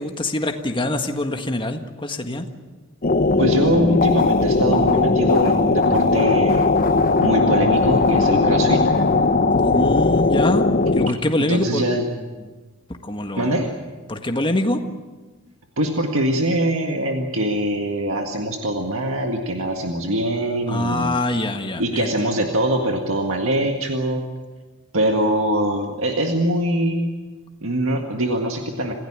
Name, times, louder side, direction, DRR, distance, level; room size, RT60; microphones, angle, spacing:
voice 1, 0.0-2.5 9.5-11.8 13.0-13.6 14.1-14.8 20.7-22.1, left 1 dB, 25° left, 5 dB, 1.7 m, -24 dB
sound 1, 3.0-11.1, left 3 dB, 45° left, 0.9 m, -18 dB
voice 2, 3.4-6.7 7.2-9.0 11.4-12.1 13.4-13.8 15.8-21.2 21.8-24.3 24.9-27.2 27.6-28.9, right 1 dB, 75° right, 3 dB, 1.9 m, -23 dB
27.0 x 16.0 x 8.9 m, 1.3 s
head